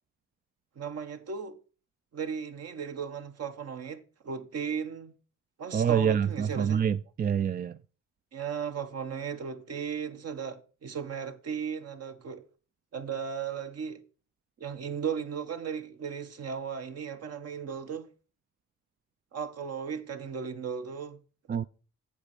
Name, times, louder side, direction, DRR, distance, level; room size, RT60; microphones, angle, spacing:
voice 1, 0.8-1.6 2.1-5.1 5.6-6.8 8.3-12.4 12.9-14.0 14.6-18.1 19.3-21.2, right 7 dB, 55° right, 1.3 m, -36 dB
voice 2, 5.7-7.8 21.5-21.6, right 8 dB, 30° right, 0.4 m, -26 dB
8.4 x 7.4 x 6.0 m
cardioid pair, 90°, 30 cm